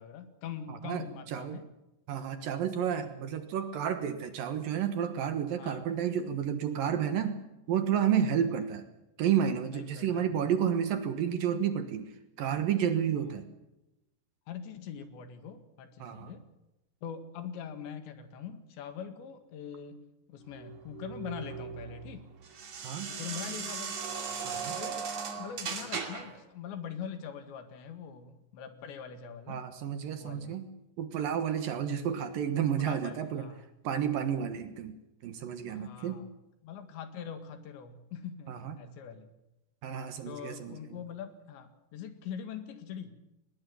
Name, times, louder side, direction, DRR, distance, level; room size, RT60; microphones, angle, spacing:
voice 1, 0.0-1.7 5.6-5.9 7.2-7.3 8.5-8.7 9.7-10.3 13.1-13.4 14.5-16.4 17.0-20.0 20.3-22.3 23.1-24.0 24.8-29.6 30.1-30.6 31.7-31.8 32.8-33.6 34.2-34.3 35.7-36.3 36.6-39.3 40.3-43.1, left 8 dB, 85° left, 9 dB, 4.3 m, -43 dB
voice 2, 0.7-1.6 2.1-7.4 7.7-8.8 9.2-12.1 12.4-13.5 16.0-16.3 22.8-23.1 24.4-24.8 29.5-30.7 31.0-33.5 33.8-35.0 35.2-36.2 38.5-38.8 39.8-40.8, right 8 dB, 65° right, 9 dB, 2.7 m, -31 dB
sound 1, 20.5-26.4, right 6 dB, 40° right, 3.2 m, -38 dB
21.0 x 20.5 x 7.1 m, 0.91 s
omnidirectional pair, 5.0 m